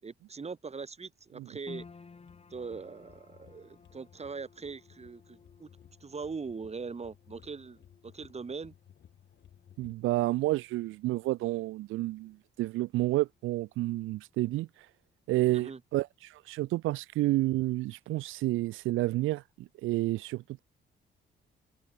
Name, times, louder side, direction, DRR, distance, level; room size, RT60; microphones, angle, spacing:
voice 1, 0.0-1.8 2.5-5.7 6.0-8.7 15.5-15.8, right 5 dB, 30° right, 4.5 m, -41 dB
sound 1, 1.7-14.1 14.3-15.3 15.7-15.8, left 4 dB, 30° left, 4.5 m, -57 dB
sound 2, 1.8-9.9, left 9 dB, 65° left, 4.3 m, -59 dB
voice 2, 9.8-14.9 15.3-20.6, right 17 dB, 90° right, 0.6 m, -30 dB
cardioid pair, 90°, 20 cm